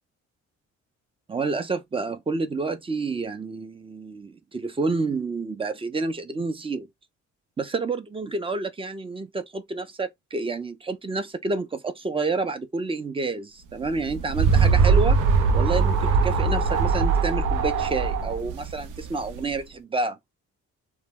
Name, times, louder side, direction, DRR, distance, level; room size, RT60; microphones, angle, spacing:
voice 1, 1.3-6.9 7.6-15.2 15.5-20.2, right 3 dB, 20° right, 0.4 m, -29 dB
sound 1, 13.9-19.5, right 5 dB, 80° right, 0.6 m, -21 dB
2.2 x 2.1 x 3.4 m
cardioid pair, 90°, 30 cm